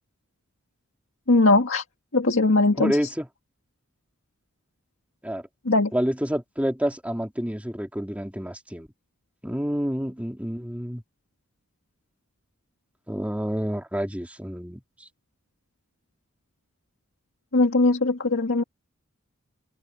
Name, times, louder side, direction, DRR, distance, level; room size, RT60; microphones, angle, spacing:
voice 1, 1.3-1.8 2.1-3.0 5.7-5.9 17.5-18.6, left 2 dB, 70° left, 1.8 m, -20 dB
voice 2, 2.8-3.3 5.2-5.5 5.9-8.9 9.4-11.0 13.1-15.1, equal, 5° right, 2.9 m, -28 dB
open air
head